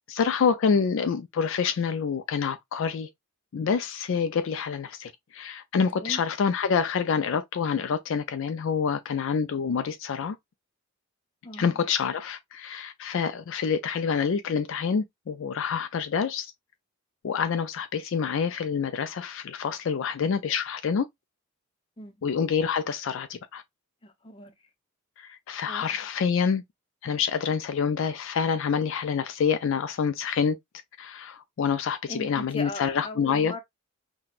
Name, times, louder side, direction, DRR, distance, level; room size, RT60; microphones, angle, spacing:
voice 1, 0.1-3.1 3.5-10.4 11.5-16.5 17.2-21.1 22.2-23.6 25.2-26.6 27.0-30.6 31.0-33.5, left 6 dB, 60° left, 0.3 m, -27 dB
voice 2, 11.4-11.8 22.0-22.2 24.0-24.5 25.7-26.1 32.1-33.6, left 1 dB, 25° left, 0.7 m, -39 dB
5.7 x 2.2 x 2.4 m
head